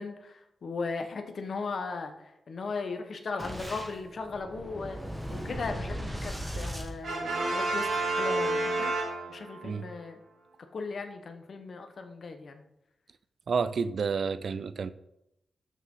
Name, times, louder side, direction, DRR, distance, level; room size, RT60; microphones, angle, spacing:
voice 1, 0.0-5.0 5.3-9.0 9.3-10.2 10.7-12.6, left 4 dB, 55° left, 6 dB, 1.1 m, -37 dB
Boom, 3.4-7.8, equal, 10° right, 1.4 m, -38 dB
Brass instrument, 7.0-9.7, right 2 dB, 75° right, 2.7 m, -29 dB
voice 2, 13.5-14.9, right 5 dB, 60° right, 14 dB, 0.5 m, -30 dB
12.5 x 6.3 x 3.8 m, 0.84 s
wide cardioid pair, 135°, 0 cm